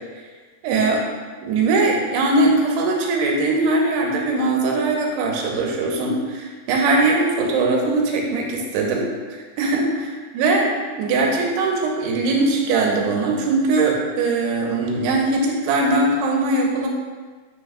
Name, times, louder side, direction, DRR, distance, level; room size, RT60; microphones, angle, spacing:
voice 1, 0.6-1.0 1.4-10.7 11.0-16.9, right 2 dB, 85° right, 0 dB, 3.0 m, -21 dB
10.0 x 6.3 x 2.3 m, 1.4 s
omnidirectional pair, 4.8 m